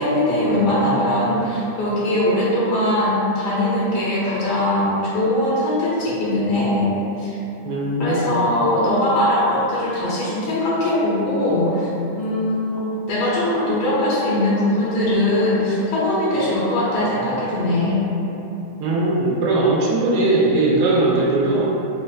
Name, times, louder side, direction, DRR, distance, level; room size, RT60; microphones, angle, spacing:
voice 1, 0.0-7.4 8.0-11.9 12.2-18.0, left 1 dB, 85° left, -8 dB, 1.2 m, -21 dB
voice 2, 7.6-8.3 18.8-21.7, right 2 dB, 85° right, -5 dB, 1.2 m, -19 dB
3.9 x 2.1 x 2.3 m, 3.0 s
omnidirectional pair, 1.8 m